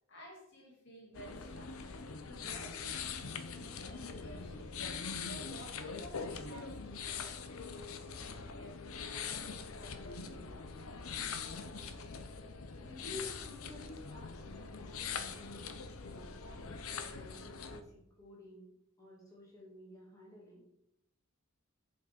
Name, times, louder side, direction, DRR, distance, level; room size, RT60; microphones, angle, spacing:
voice 1, 0.1-4.7 5.2-9.5 9.8-10.7, equal, 55° left, -3 dB, 2.9 m, -54 dB
sound 1, 1.1-17.8, left 5 dB, 80° left, 0.8 m, -43 dB
voice 2, 12.7-15.7 16.0-20.6, left 1 dB, 15° left, -4 dB, 2.6 m, -52 dB
7.0 x 6.5 x 5.1 m, 0.82 s
head